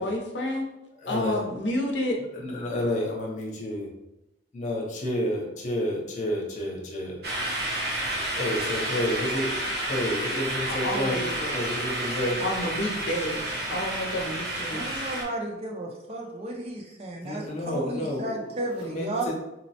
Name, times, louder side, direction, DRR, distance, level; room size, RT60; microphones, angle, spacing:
voice 1, 0.0-0.6 1.1-2.2 10.8-11.6 12.4-15.0, left 1 dB, 75° left, 0 dB, 0.6 m, -30 dB
voice 2, 1.0-1.4 2.3-3.9 4.5-7.2 8.1-12.4 16.2-16.4 17.2-19.3, left 1 dB, 40° left, -2 dB, 0.7 m, -30 dB
sound 1, 7.2-15.2, right 1 dB, 55° right, 0.8 m, -30 dB
voice 3, 14.7-19.3, right 1 dB, 35° right, 0 dB, 0.4 m, -33 dB
4.1 x 2.0 x 2.7 m, 0.93 s
head